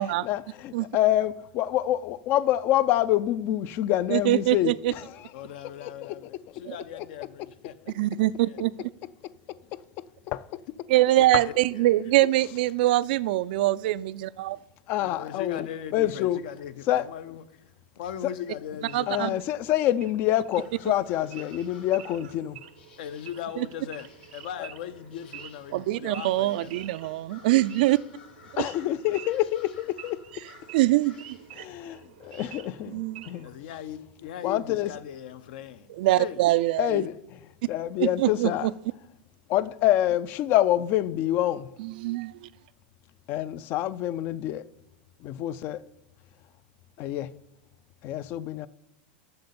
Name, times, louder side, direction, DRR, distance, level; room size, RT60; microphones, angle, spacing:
voice 1, 0.0-5.3 5.6-6.6 6.9-7.1 7.4-7.5 9.2-9.8 10.3-10.6 11.3-11.4 14.9-16.4 16.9-17.1 18.2-18.3 19.1-22.6 24.6-24.7 28.6-30.2 31.5-33.5 34.4-34.9 36.8-38.7 39.5-41.7 43.3-44.6 45.2-45.8 47.0-47.3 48.0-48.7, left 13 dB, 40° left, 0.4 m, -27 dB
voice 2, 4.1-4.9 6.7-6.8 7.9-8.9 10.9-14.6 18.9-19.3 23.6-23.7 25.7-28.0 30.7-31.4 32.9-33.2 36.0-36.9 38.0-38.5 41.8-42.3, right 16 dB, 65° right, 0.3 m, -23 dB
voice 3, 5.3-8.6 11.2-11.8 15.0-17.4 17.9-19.3 23.0-24.1 24.3-26.9 33.4-35.9 36.2-36.4, left 9 dB, 65° left, 0.7 m, -39 dB
Wild animals / Idling, 18.8-33.6, right 11 dB, 85° right, 0.8 m, -48 dB
sound 1, 20.5-32.6, left 5 dB, 90° left, 1.8 m, -55 dB
7.9 x 6.6 x 7.0 m
supercardioid pair, 140°, 5 cm